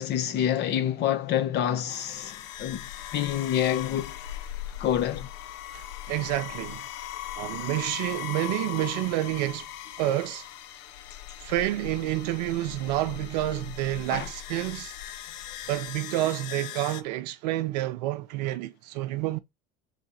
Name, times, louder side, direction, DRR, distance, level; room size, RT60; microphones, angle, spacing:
voice 1, 0.0-2.8 3.1-4.2 4.8-5.3 14.1-14.3, left 10 dB, 55° left, 0.9 m, -27 dB
sound 1, 1.9-17.0, left 12 dB, 75° left, 0.6 m, -39 dB
voice 2, 5.7-6.8 7.4-9.7 10.0-10.5 11.4-14.9 15.7-19.4, right 15 dB, 80° right, 0.6 m, -29 dB
3.7 x 3.3 x 4.2 m
supercardioid pair, 85°, 21 cm